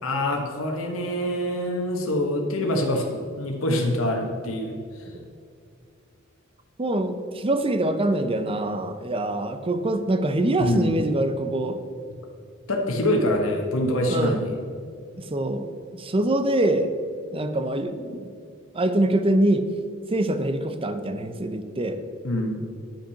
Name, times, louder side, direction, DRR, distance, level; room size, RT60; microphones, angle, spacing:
voice 1, 0.0-5.1 10.6-10.9 12.7-14.4 22.2-22.6, left 1 dB, 80° left, 1 dB, 1.3 m, -25 dB
voice 2, 6.8-11.8 14.1-14.4 15.2-16.9 17.3-18.3 18.7-19.6 20.1-22.0, right 1 dB, 25° right, 9 dB, 0.6 m, -24 dB
10.0 x 5.8 x 5.8 m, 2.3 s
head